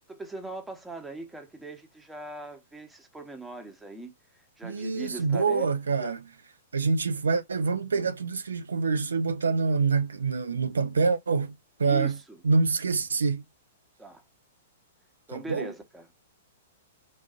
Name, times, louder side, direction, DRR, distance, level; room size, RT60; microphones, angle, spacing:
voice 1, 0.1-5.7 6.0-6.1 11.8-12.1 14.0-14.2 15.3-16.2, right 2 dB, 5° right, 0.9 m, -40 dB
voice 2, 4.6-6.2 6.7-12.2 12.4-13.4 15.3-15.7, right 4 dB, 75° right, 0.4 m, -26 dB
3.9 x 2.5 x 2.3 m
figure-of-eight pair, 110°, 0 cm